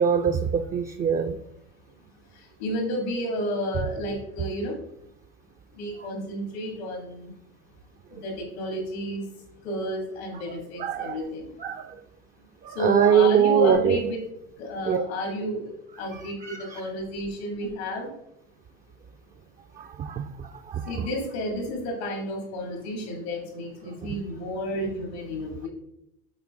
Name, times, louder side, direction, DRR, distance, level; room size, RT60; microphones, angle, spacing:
voice 1, 0.0-1.4 6.0-6.1 10.4-10.5 10.8-11.2 11.6-12.0 12.6-14.0 14.9-15.0 16.1-16.8 19.8-20.3 20.7-20.9 24.0-24.1, right 8 dB, 30° right, 8 dB, 0.4 m, -23 dB
voice 2, 2.3-4.8 5.7-7.3 8.1-9.3 9.6-11.6 12.7-14.2 14.6-18.1 20.9-25.7, equal, 90° left, 2 dB, 2.5 m, -31 dB
7.2 x 4.2 x 3.7 m, 0.80 s
supercardioid pair, 105°, 31 cm